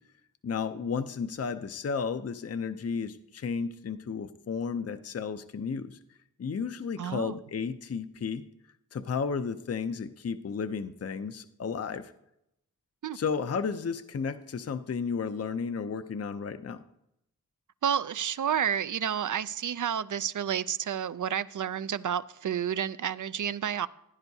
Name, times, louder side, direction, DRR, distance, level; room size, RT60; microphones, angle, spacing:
voice 1, 0.4-6.0 6.4-8.4 8.9-12.1 13.1-16.8, left 5 dB, 40° left, 0.5 m, -33 dB
voice 2, 7.0-7.4 13.0-13.2 17.8-23.9, right 9 dB, 55° right, 0.4 m, -30 dB
15.0 x 10.5 x 2.7 m
wide cardioid pair, 65°, 36 cm